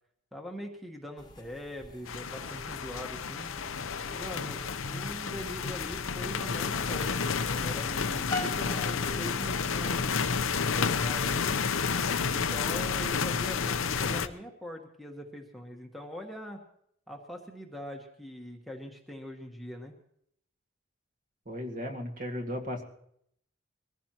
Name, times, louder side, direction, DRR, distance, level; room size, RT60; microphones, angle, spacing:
voice 1, 0.3-3.5 4.1-10.2 10.5-11.6 12.2-16.6 17.1-20.0, equal, ahead, 2 dB, 1.2 m, -42 dB
sound 1, 1.2-9.2, left 2 dB, 20° left, 1.1 m, -43 dB
sound 2, 2.1-14.3, left 5 dB, 90° left, 0.8 m, -30 dB
voice 2, 21.5-22.8, equal, 40° right, 3 dB, 2.0 m, -35 dB
23.0 x 15.5 x 3.0 m, 0.69 s
head